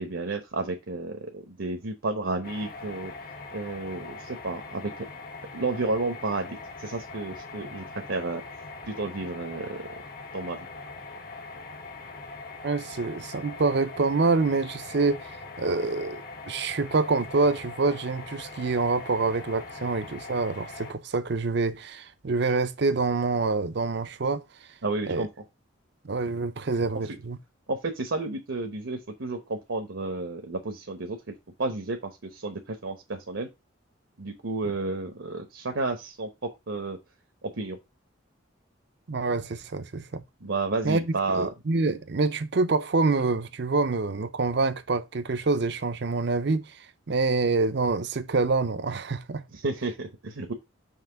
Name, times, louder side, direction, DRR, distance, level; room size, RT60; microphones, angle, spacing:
voice 1, 0.0-3.1 3.5-5.0 5.5-8.4 8.9-9.8 10.3-10.7 24.8-25.3 27.7-31.2 31.6-33.5 34.2-36.3 36.7-37.0 37.5-37.8 40.4-41.5 49.5-50.5, right 3 dB, 75° right, 1.0 m, -31 dB
sound 1, 2.4-20.9, left 3 dB, 45° left, 1.0 m, -42 dB
voice 2, 12.6-16.2 16.5-24.4 25.1-25.3 26.0-27.4 39.1-40.2 40.8-46.7 47.1-49.4, right 3 dB, 55° right, 0.6 m, -26 dB
5.8 x 3.1 x 5.7 m
head